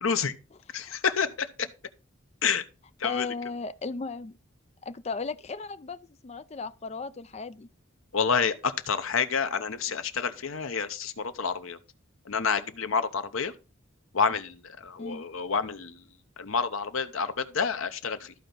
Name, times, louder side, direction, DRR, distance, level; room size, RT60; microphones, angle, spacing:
voice 1, 0.0-0.3 0.7-1.7 2.4-2.6 3.0-3.3 8.1-11.8 12.3-13.5 14.1-16.0 16.4-18.3, left 6 dB, 80° left, 0.8 m, -28 dB
voice 2, 3.0-4.4 4.9-7.7 15.0-15.3, left 4 dB, 30° left, 0.4 m, -36 dB
13.5 x 4.6 x 3.9 m
head